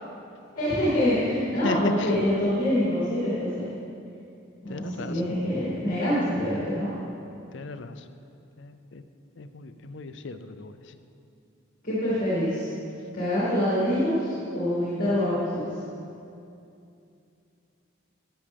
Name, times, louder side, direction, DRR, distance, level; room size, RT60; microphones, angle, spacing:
voice 1, 0.5-3.5 4.6-7.0 11.8-12.7 13.1-15.6, equal, 40° left, -10 dB, 2.5 m, -25 dB
voice 2, 1.6-2.1 4.7-5.2 7.5-8.0 8.6-9.0 9.4-11.0 15.0-15.1, left 3 dB, 65° left, 10 dB, 0.5 m, -35 dB
12.5 x 9.6 x 3.5 m, 2.6 s
head